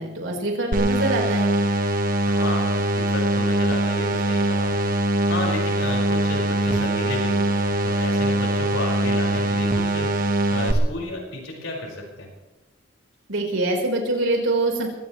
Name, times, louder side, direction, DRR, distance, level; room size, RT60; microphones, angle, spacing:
voice 1, 0.0-1.6 13.3-14.9, right 2 dB, 80° right, 0 dB, 4.4 m, -24 dB
sound 1, 0.7-10.7, right 1 dB, 45° right, 1.4 m, -22 dB
voice 2, 2.3-4.9 5.3-12.3, left 1 dB, 80° left, -1 dB, 5.5 m, -33 dB
23.0 x 18.0 x 3.2 m, 1.1 s
head